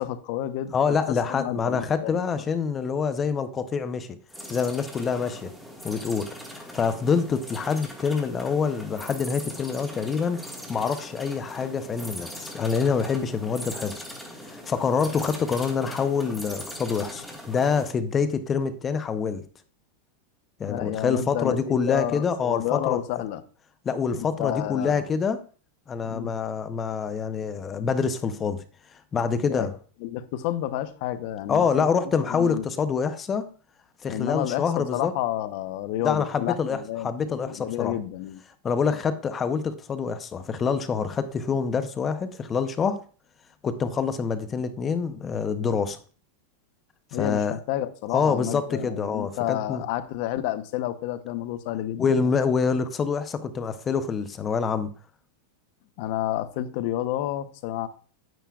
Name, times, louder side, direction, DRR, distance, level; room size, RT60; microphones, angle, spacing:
voice 1, 0.0-2.2 20.7-23.4 24.1-25.0 26.0-26.3 29.5-29.7 30.0-31.7 32.3-32.6 34.0-38.4 47.1-52.3 56.0-57.9, left 13 dB, 55° left, 0.8 m, -30 dB
voice 2, 0.7-4.1 4.5-5.5 5.8-14.0 14.4-19.4 20.6-23.0 23.8-25.4 25.9-28.6 29.1-29.7 31.5-33.5 34.0-35.1 36.0-37.9 38.6-43.0 43.6-46.0 47.1-47.5 48.1-49.8 52.0-54.9, left 6 dB, 20° left, 0.7 m, -26 dB
sound 1, 4.3-17.9, equal, ahead, 1.8 m, -40 dB
9.7 x 9.2 x 2.4 m
supercardioid pair, 140°, 0 cm